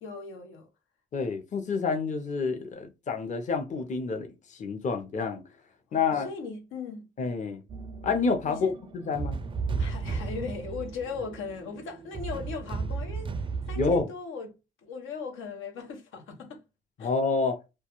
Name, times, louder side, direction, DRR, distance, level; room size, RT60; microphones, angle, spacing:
voice 1, 0.0-0.7 5.9-7.1 8.5-8.7 9.8-14.5 14.8-16.6 17.0-17.1, left 5 dB, 85° left, 0.7 m, -38 dB
voice 2, 1.1-5.4 5.9-6.3 7.2-7.6 8.0-9.4 13.8-14.1 17.0-17.6, left 4 dB, 40° left, 0.6 m, -28 dB
sound 1, 7.7-14.0, right 4 dB, 25° right, 0.4 m, -35 dB
2.2 x 2.2 x 2.9 m
cardioid pair, 90°, 20 cm